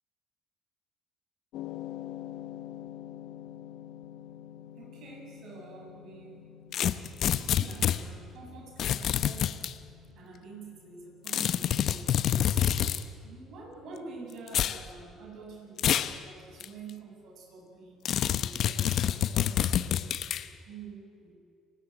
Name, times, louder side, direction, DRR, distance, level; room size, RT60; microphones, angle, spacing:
sound 1, 1.5-19.8, left 12 dB, 75° left, 1.4 m, -48 dB
voice 1, 4.7-6.5 7.3-9.7 10.1-12.8 13.2-18.0 18.4-19.7 20.6-21.3, right 4 dB, 65° right, 0 dB, 7.8 m, -47 dB
sound 2, 6.7-8.0 8.8-9.7 11.3-13.0 14.5-14.8 15.8-16.2 16.6-16.7 18.1-20.4, left 10 dB, 60° left, 0.9 m, -27 dB
29.5 x 13.5 x 9.0 m, 2.2 s
supercardioid pair, 80°, 0 cm